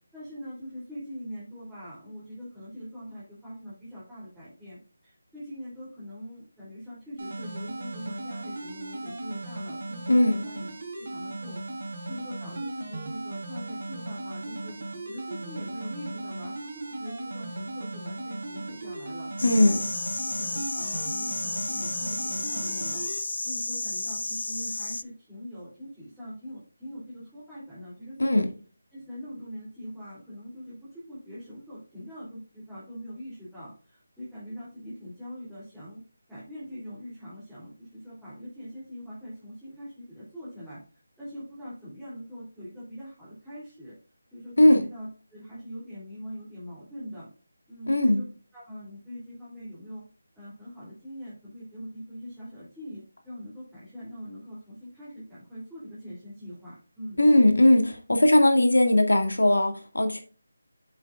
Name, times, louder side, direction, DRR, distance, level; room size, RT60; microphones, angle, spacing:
voice 1, 0.1-10.7 11.0-11.6 12.1-14.8 15.1-19.3 19.6-19.9 20.2-23.0 23.4-28.5 28.9-36.0 36.3-40.8 41.2-43.9 44.3-47.3 47.7-48.2 48.5-50.0 50.3-57.2, equal, ahead, -14 dB, 3.0 m, -42 dB
sound 1, 7.2-23.2, right 2 dB, 45° right, 3.2 m, -37 dB
voice 2, 10.1-10.4 19.4-19.8 28.2-28.5 44.6-44.8 47.9-48.2 57.2-60.2, left 1 dB, 85° left, 5 dB, 2.0 m, -19 dB
sound 2, 19.4-25.0, left 3 dB, 70° left, 0.4 m, -32 dB
7.9 x 6.9 x 2.4 m, 0.37 s
figure-of-eight pair, 165°, 0 cm